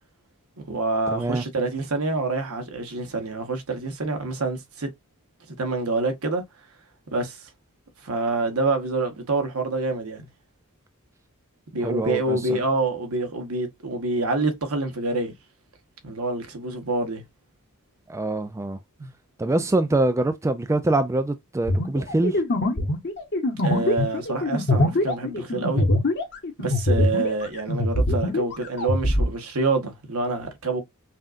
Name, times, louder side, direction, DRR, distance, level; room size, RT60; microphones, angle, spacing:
voice 1, 0.6-4.9 5.5-6.4 7.1-7.5 8.0-10.3 11.7-15.3 16.0-17.2 19.0-19.1 23.6-25.9 26.6-30.8, right 3 dB, 70° right, 1.1 m, -27 dB
voice 2, 1.1-1.4 11.8-12.6 18.1-18.8 19.4-22.4, right 2 dB, 15° right, 0.3 m, -24 dB
sound 1, 21.7-27.4 27.7-29.3, left 1 dB, 50° left, 1.1 m, -23 dB
5.5 x 2.4 x 2.5 m
head